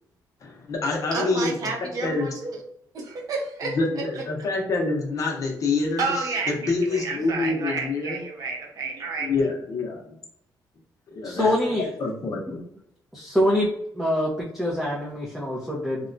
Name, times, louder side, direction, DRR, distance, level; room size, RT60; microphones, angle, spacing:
voice 1, 0.4-1.6 2.0-2.3 3.6-8.2 9.2-10.0 11.2-11.5 12.0-12.6, left 3 dB, 50° left, 0 dB, 0.7 m, -26 dB
voice 2, 1.1-2.6 2.9-4.2 6.0-9.3, right 4 dB, 55° right, 1 dB, 0.7 m, -30 dB
voice 3, 11.4-11.9 13.1-13.7 13.9-16.1, left 1 dB, 5° right, -6 dB, 0.6 m, -24 dB
2.9 x 2.2 x 2.5 m, 0.75 s
cardioid pair, 130°, 7 cm